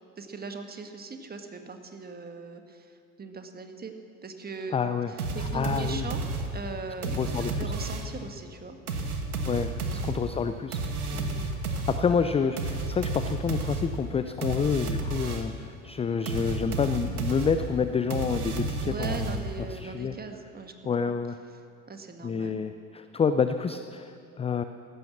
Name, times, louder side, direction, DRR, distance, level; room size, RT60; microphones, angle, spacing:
voice 1, 0.2-3.9 4.2-6.2 6.5-7.2 7.6-8.8 9.9-10.1 11.1-11.5 18.8-20.7 21.0-21.1 21.9-22.6, right 4 dB, 20° right, 6 dB, 1.6 m, -40 dB
voice 2, 4.7-5.1 5.5-6.1 7.1-7.7 9.5-10.8 11.9-19.4 19.7-20.1 20.9-21.4 22.2-24.6, left 6 dB, 15° left, 10 dB, 0.4 m, -28 dB
sound 1, 5.2-8.2 8.9-15.6 16.3-19.8, right 2 dB, 85° right, 1.5 m, -32 dB
15.0 x 12.0 x 7.3 m, 2.4 s
figure-of-eight pair, 70°, 43 cm